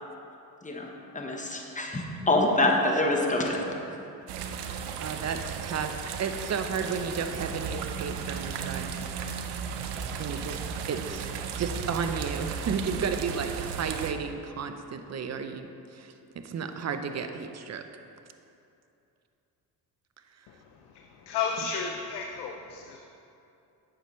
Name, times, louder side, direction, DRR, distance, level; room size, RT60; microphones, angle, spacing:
voice 1, 0.6-3.6, left 2 dB, 20° left, 1 dB, 1.1 m, -26 dB
sound 1, 4.3-14.1, right 6 dB, 85° right, 0.6 m, -35 dB
voice 2, 5.0-8.9 10.2-11.3 11.6-17.8 21.6-21.7, right 6 dB, 40° right, 7 dB, 0.6 m, -33 dB
voice 3, 21.3-23.0, left 6 dB, 70° left, 2 dB, 0.7 m, -32 dB
8.7 x 6.8 x 3.1 m, 2.7 s
supercardioid pair, 75°, 40 cm